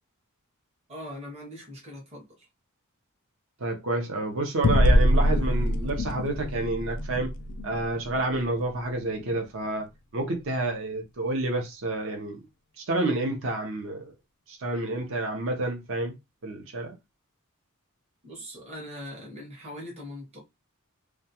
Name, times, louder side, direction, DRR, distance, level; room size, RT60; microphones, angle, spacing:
voice 1, 0.9-2.4 18.2-20.4, left 1 dB, 30° right, 0.8 m, -41 dB
voice 2, 3.6-7.3 7.6-9.9 10.1-12.4 12.8-14.1 14.5-16.1 16.4-16.9, right 2 dB, 60° right, 0.7 m, -29 dB
sound 1, 4.6-9.5, equal, 50° left, 0.4 m, -25 dB
2.3 x 2.3 x 2.8 m
head